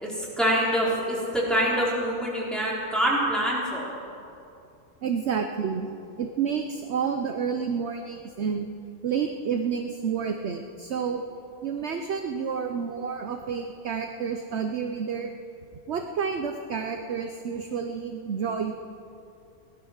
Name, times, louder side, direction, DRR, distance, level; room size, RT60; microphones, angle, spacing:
voice 1, 0.0-3.9, equal, ahead, -6 dB, 3.8 m, -25 dB
voice 2, 5.0-5.9 6.2-8.7 9.0-11.2 11.6-15.3 15.9-18.7, right 6 dB, 55° right, 5 dB, 0.9 m, -29 dB
17.0 x 12.5 x 6.4 m, 2.6 s
omnidirectional pair, 1.5 m